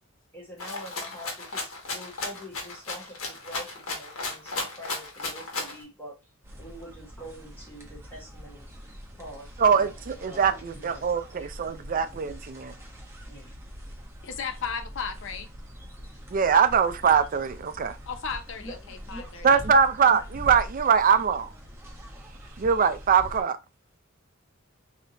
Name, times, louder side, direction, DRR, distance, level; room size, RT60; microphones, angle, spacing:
voice 1, 0.3-6.2 6.5-8.7 9.2-9.9 10.2-10.4 10.7-11.0 12.0-12.2 13.3-13.5 18.6-19.2, equal, 10° left, 1.2 m, -45 dB
Rattle (instrument), 0.6-5.8, left 3 dB, 85° left, 1.3 m, -34 dB
sound 1, 6.4-23.4, equal, 15° right, 0.9 m, -44 dB
voice 2, 9.6-12.7 16.3-18.0 19.4-21.5 22.6-23.6, right 6 dB, 40° right, 0.4 m, -22 dB
voice 3, 14.2-15.5 18.1-19.6, left 6 dB, 65° left, 0.6 m, -35 dB
3.4 x 2.7 x 3.8 m
head